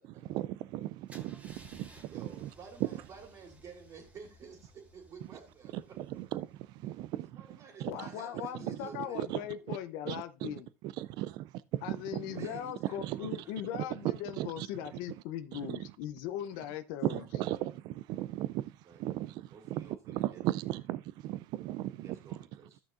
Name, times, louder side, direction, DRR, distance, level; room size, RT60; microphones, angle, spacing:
voice 1, 0.2-2.5 5.7-8.1 8.6-9.4 9.7-9.8 10.1-10.5 10.8-12.5 13.0-13.4 13.7-14.7 15.5-15.8 17.0-22.4, right 15 dB, 65° right, 0.4 m, -37 dB
Car / Engine starting / Idling, 1.1-6.9, right 1 dB, 15° right, 1.8 m, -58 dB
voice 2, 2.1-5.7 7.4-9.3 9.5-9.6 12.2-13.6 16.9-17.0 18.9-20.4 21.9-22.8, right 5 dB, 45° right, 2.5 m, -52 dB
voice 3, 7.9-10.7 11.8-17.2, left 11 dB, 75° left, 0.7 m, -39 dB
13.5 x 6.1 x 2.5 m
supercardioid pair, 90°, 8 cm